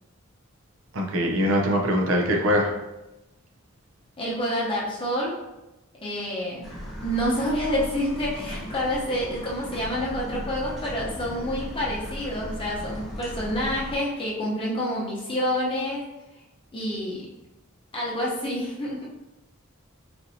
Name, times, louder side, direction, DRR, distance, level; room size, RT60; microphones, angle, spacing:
voice 1, 0.9-2.7, equal, 70° right, 1 dB, 0.6 m, -22 dB
voice 2, 4.2-5.4 6.0-6.7 7.0-16.0 16.7-17.3 17.9-19.1, equal, 25° left, -5 dB, 0.8 m, -28 dB
sound 1, 6.6-14.0, equal, ahead, 1.0 m, -37 dB
4.2 x 2.6 x 2.7 m, 0.99 s
head